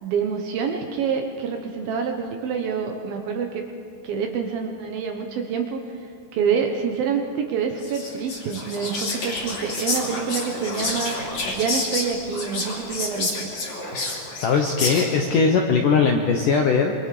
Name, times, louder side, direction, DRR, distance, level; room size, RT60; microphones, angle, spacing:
voice 1, 0.0-3.7 4.0-5.8 6.3-11.2 11.5-13.5, right 6 dB, 65° right, 4 dB, 2.6 m, -27 dB
Whispering, 7.8-15.3, left 2 dB, 45° left, 3.7 m, -29 dB
voice 2, 14.4-17.0, left 5 dB, 70° left, 2 dB, 2.0 m, -20 dB
26.0 x 24.0 x 5.1 m, 2.7 s
omnidirectional pair, 5.2 m